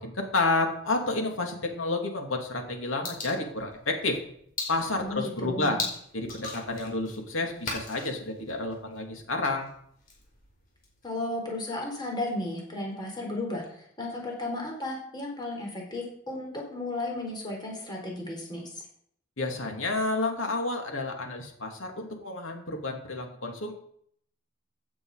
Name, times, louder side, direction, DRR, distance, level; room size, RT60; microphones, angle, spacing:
voice 1, 0.0-4.2 4.7-5.8 6.1-9.7 19.4-23.7, left 2 dB, 70° left, 3 dB, 2.8 m, -30 dB
sound 1, 3.0-11.1, left 3 dB, 45° left, 4.9 m, -40 dB
voice 2, 5.0-5.8 11.0-18.7, left 2 dB, 20° left, -1 dB, 4.0 m, -34 dB
16.5 x 9.2 x 5.0 m, 0.66 s
head